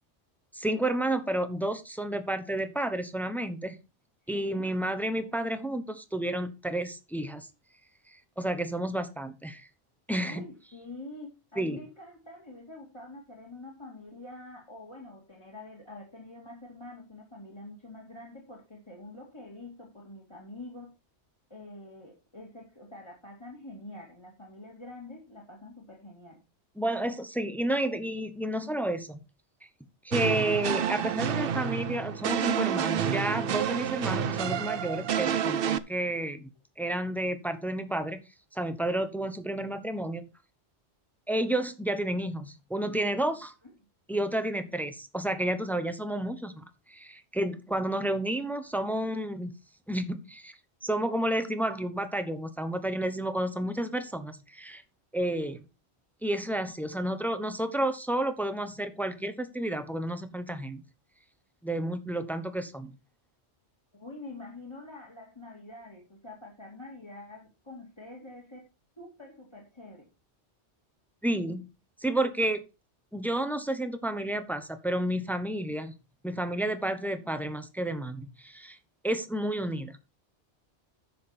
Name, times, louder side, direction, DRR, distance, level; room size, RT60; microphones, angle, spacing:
voice 1, 0.5-3.8 4.3-7.5 8.1-9.7 10.1-10.4 11.6-11.8 26.8-29.2 30.0-36.5 36.8-38.2 38.5-40.3 41.3-43.5 44.1-49.5 49.9-50.5 50.8-54.8 55.1-55.6 56.2-60.8 61.6-62.9 71.2-71.7 72.0-72.6 73.1-75.9 76.2-78.8 79.0-79.9, right 1 dB, ahead, 0.9 m, -31 dB
voice 2, 4.3-4.7 10.2-20.9 21.5-26.4 55.2-55.6 63.9-68.6 69.0-70.1, left 2 dB, 25° left, 2.6 m, -46 dB
sound 1, 30.1-35.8, right 8 dB, 60° right, 0.8 m, -29 dB
10.0 x 7.4 x 4.3 m
omnidirectional pair, 1.2 m